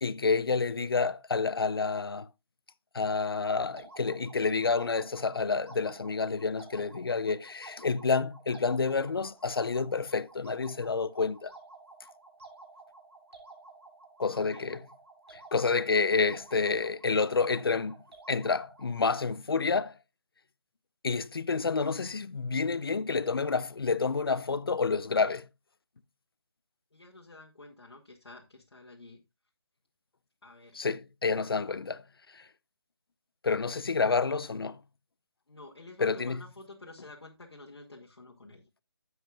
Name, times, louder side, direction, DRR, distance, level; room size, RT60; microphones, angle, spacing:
voice 1, 0.0-2.3 2.9-11.5 14.2-14.8 15.3-18.0 18.3-20.0 21.0-25.5 30.7-32.0 32.3-32.5 33.4-34.8 36.0-36.4, left 4 dB, 65° left, 0.6 m, -29 dB
sound 1, 3.8-19.1, right 3 dB, 85° right, 3.3 m, -52 dB
voice 2, 14.3-14.7 26.9-29.2 30.4-30.8 35.5-38.6, left 2 dB, 80° left, 2.0 m, -50 dB
12.5 x 7.9 x 2.4 m
figure-of-eight pair, 170°, 13 cm